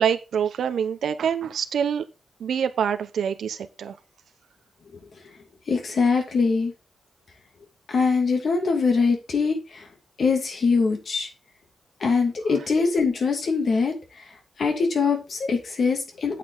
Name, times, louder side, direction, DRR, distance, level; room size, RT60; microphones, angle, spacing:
voice 1, 0.0-2.0 2.4-3.9, right 8 dB, 80° right, 1.0 m, -25 dB
voice 2, 5.7-6.7 7.9-9.9 10.2-11.3 12.0-13.9 14.6-16.4, left 4 dB, 55° left, 2.7 m, -23 dB
8.6 x 7.6 x 4.0 m
wide cardioid pair, 125°, 0 cm